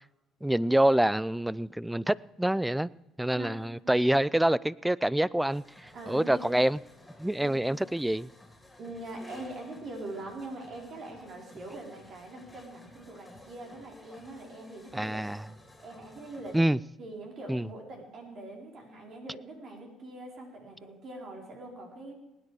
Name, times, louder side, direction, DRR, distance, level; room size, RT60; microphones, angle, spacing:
voice 1, 0.4-2.9 3.2-6.8 7.2-8.3 14.9-15.5 16.5-16.8 17.5-17.7, right 1 dB, 5° right, 0.4 m, -26 dB
voice 2, 3.4-3.9 5.9-6.5 8.8-15.2 15.8-16.6 17.0-22.1, right 2 dB, 55° right, 4.4 m, -43 dB
sound 1, 5.5-16.6, left 1 dB, 10° left, 3.6 m, -54 dB
19.5 x 9.8 x 4.8 m
supercardioid pair, 80°, 0 cm